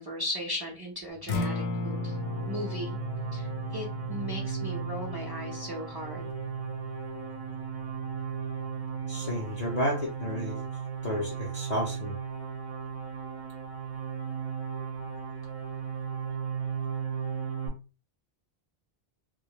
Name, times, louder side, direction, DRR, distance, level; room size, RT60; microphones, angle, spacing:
voice 1, 0.0-2.2 2.5-3.0 3.3-6.3, left 1 dB, 30° right, -2 dB, 0.5 m, -37 dB
Acoustic guitar, 1.1-9.3, left 3 dB, 75° left, 0.9 m, -37 dB
sound 1, 1.4-17.7, right 7 dB, 55° right, 0.8 m, -36 dB
voice 2, 9.1-10.7 11.0-12.1, left 1 dB, 50° left, -1 dB, 0.5 m, -32 dB
2.2 x 2.0 x 2.9 m, 0.32 s
omnidirectional pair, 1.1 m